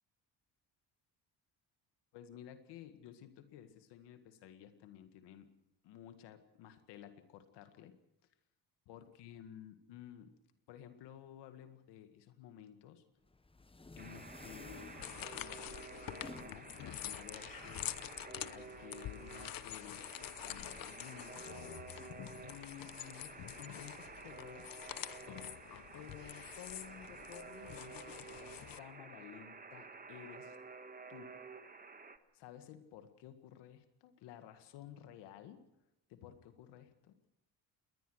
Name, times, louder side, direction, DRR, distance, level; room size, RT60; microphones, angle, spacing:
voice 1, 2.1-5.5 5.8-8.0 8.9-10.4 10.7-13.0 13.9-17.9 18.5-21.5 22.4-24.7 25.9-30.6 31.1-31.4 32.3-35.6 36.1-37.1, left 10 dB, 90° left, 9 dB, 1.9 m, -54 dB
sound 1, 13.3-19.1, left 3 dB, 15° left, 1.1 m, -55 dB
Alarm, 14.0-32.2, right 4 dB, 20° right, 1.6 m, -52 dB
sound 2, 14.7-28.8, left 12 dB, 55° left, 0.9 m, -47 dB
21.0 x 19.0 x 6.4 m, 0.87 s
cardioid pair, 95°, 40 cm